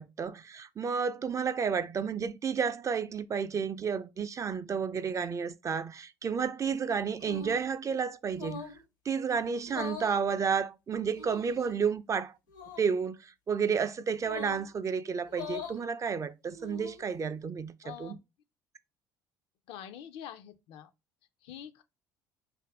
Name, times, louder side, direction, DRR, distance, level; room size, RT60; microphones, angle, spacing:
voice 1, 0.0-8.6 9.1-12.3 12.8-18.2, right 6 dB, 30° right, 0.3 m, -31 dB
sound 1, 7.2-7.7 8.3-8.8 9.6-10.2 11.1-11.7 12.5-12.9 14.2-14.7 15.3-15.8 16.5-17.1, left 4 dB, 90° left, 0.9 m, -42 dB
voice 2, 17.8-18.2 19.7-20.9 21.4-21.8, left 10 dB, 65° left, 0.4 m, -45 dB
2.6 x 2.5 x 3.2 m
hypercardioid pair, 65°, 10 cm